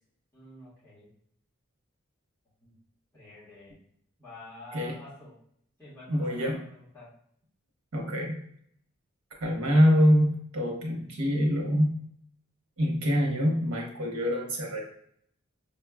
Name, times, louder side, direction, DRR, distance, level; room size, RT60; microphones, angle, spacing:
voice 1, 0.3-1.1 2.6-2.7 3.1-3.8 4.2-5.4 5.8-7.1, left 1 dB, 10° left, -11 dB, 1.3 m, -48 dB
voice 2, 6.1-6.6 7.9-8.4 9.4-12.0 12.8-14.9, equal, 80° right, 1 dB, 0.9 m, -25 dB
5.3 x 2.3 x 2.3 m, 0.67 s
head